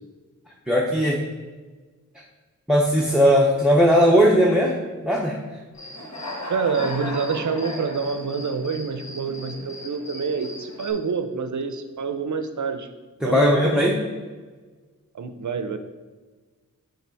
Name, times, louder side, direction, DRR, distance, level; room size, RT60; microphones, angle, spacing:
voice 1, 0.7-1.2 2.7-4.8 5.0-5.4 13.2-14.0, equal, ahead, -2 dB, 0.6 m, -18 dB
Human voice / Cricket, 5.7-10.9, left 2 dB, 55° left, 1.2 m, -36 dB
voice 2, 6.5-12.9 13.2-13.9 15.1-15.8, right 5 dB, 60° right, 9 dB, 0.5 m, -27 dB
5.9 x 3.8 x 4.5 m, 1.3 s
wide cardioid pair, 70°, 33 cm